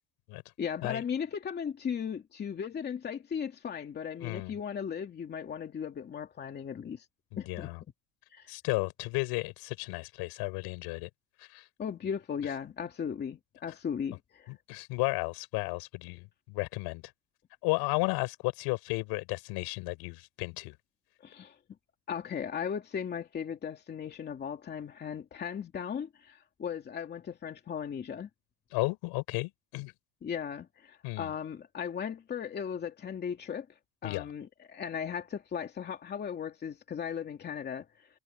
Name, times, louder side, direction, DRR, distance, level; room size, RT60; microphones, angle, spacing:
voice 1, 0.6-7.0 7.4-7.7 8.3-8.5 11.8-14.5 21.2-21.6 22.1-28.3 30.2-33.7 34.0-38.1, left 7 dB, 25° left, 2.7 m, -37 dB
voice 2, 4.2-4.5 7.3-7.8 8.5-11.1 11.4-11.7 14.5-17.0 17.6-20.7 28.7-29.9 31.0-31.3 34.0-34.3, left 25 dB, 75° left, 5.9 m, -33 dB
cardioid pair, 165°, 40 cm